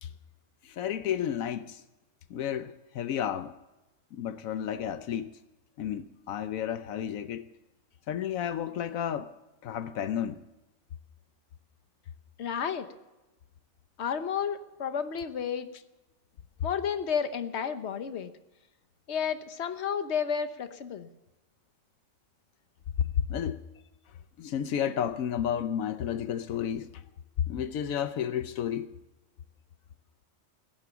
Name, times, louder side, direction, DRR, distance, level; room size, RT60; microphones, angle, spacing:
voice 1, 0.6-1.8 2.3-3.5 4.1-5.3 5.8-7.4 8.1-9.3 9.6-10.4 23.0-23.6 24.4-27.0 27.5-29.0, left 9 dB, 85° left, 1.1 m, -32 dB
voice 2, 12.4-12.9 14.0-15.7 16.6-18.3 19.1-21.1, left 7 dB, 55° left, 1.3 m, -31 dB
16.5 x 10.5 x 7.1 m
omnidirectional pair, 1.4 m